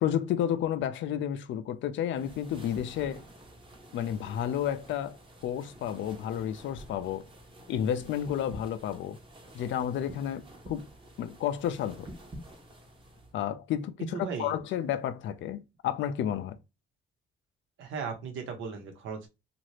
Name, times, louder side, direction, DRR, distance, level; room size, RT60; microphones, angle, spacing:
voice 1, 0.0-3.2 3.9-5.2 5.4-7.2 7.7-9.2 9.5-10.9 11.2-12.1 13.3-16.6, left 10 dB, 70° left, 0.5 m, -31 dB
sound 1, 2.2-13.3, right 1 dB, 25° right, 0.9 m, -49 dB
voice 2, 14.0-14.6 17.8-19.3, right 5 dB, 80° right, 1.0 m, -37 dB
2.8 x 2.5 x 3.1 m
cardioid pair, 90°, 20 cm